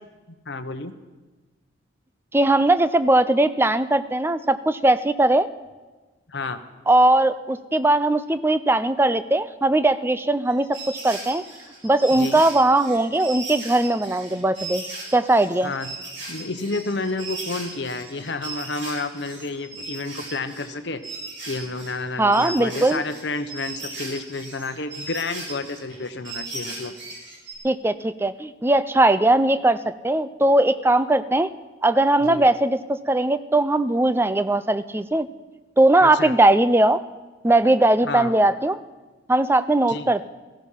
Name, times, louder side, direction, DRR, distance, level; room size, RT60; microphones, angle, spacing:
voice 1, 0.5-0.9 6.3-6.6 12.2-12.4 15.6-15.9 16.3-21.0 21.4-26.9 32.2-32.4 36.0-36.3 38.0-38.3 39.9-40.1, left 3 dB, 60° left, 9 dB, 1.0 m, -30 dB
voice 2, 2.3-5.5 6.9-11.4 11.8-14.8 15.1-15.7 22.2-23.0 27.6-31.5 31.8-35.3 35.8-37.0 37.4-38.8 39.3-40.2, right 2 dB, 10° right, 13 dB, 0.4 m, -19 dB
sound 1, 10.5-20.8 21.0-27.5, right 2 dB, 70° right, 6.3 m, -37 dB
17.0 x 14.5 x 5.7 m, 1.3 s
head